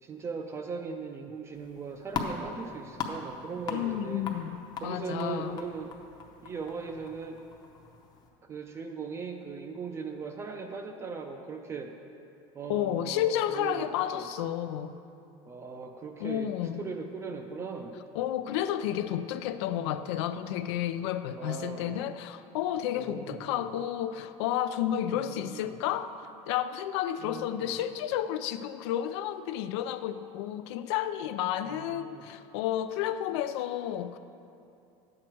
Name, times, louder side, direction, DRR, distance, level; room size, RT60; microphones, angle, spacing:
voice 1, 0.0-4.3 4.8-5.9 6.4-7.4 8.4-11.9 12.5-14.3 15.5-18.0 21.3-22.0 22.9-23.7 25.1-25.8 27.2-27.7 31.6-32.2, right 5 dB, 20° right, 4 dB, 0.4 m, -39 dB
sound 1, 1.5-8.3, left 5 dB, 30° left, 0.8 m, -40 dB
voice 2, 3.7-5.6 12.7-14.9 16.2-16.8 18.1-34.2, left 11 dB, 90° left, 11 dB, 0.5 m, -31 dB
10.0 x 7.7 x 4.5 m, 2.6 s
cardioid pair, 165°, 14 cm